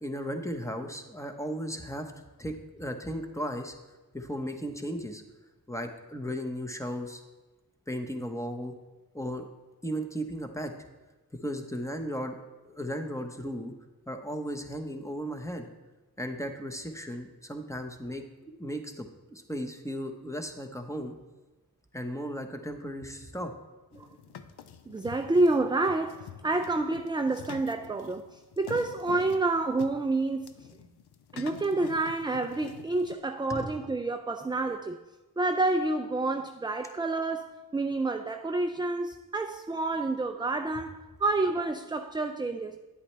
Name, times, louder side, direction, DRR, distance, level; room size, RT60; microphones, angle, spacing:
voice 1, 0.0-2.1 2.4-3.7 4.1-5.2 5.7-7.2 7.9-8.7 9.1-9.5 9.8-10.7 11.4-12.3 12.7-13.7 14.1-15.7 16.2-18.2 18.6-21.1 21.9-23.5 33.5-33.7, equal, 10° left, 0.9 m, -35 dB
sound 1, 23.9-33.1, left 8 dB, 85° left, 0.5 m, -47 dB
voice 2, 24.9-30.7 31.3-35.0 35.4-42.8, right 2 dB, 10° right, 0.4 m, -29 dB
9.5 x 8.4 x 3.3 m
cardioid pair, 50°, 38 cm